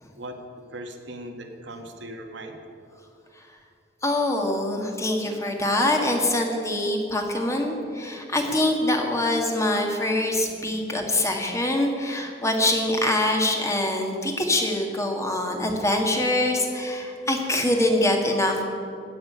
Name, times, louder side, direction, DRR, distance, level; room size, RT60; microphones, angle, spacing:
voice 1, 0.7-2.6, right 1 dB, 65° right, 4 dB, 1.6 m, -38 dB
voice 2, 4.0-18.6, left 1 dB, 15° left, 2 dB, 1.6 m, -24 dB
15.0 x 6.2 x 10.0 m, 2.4 s
head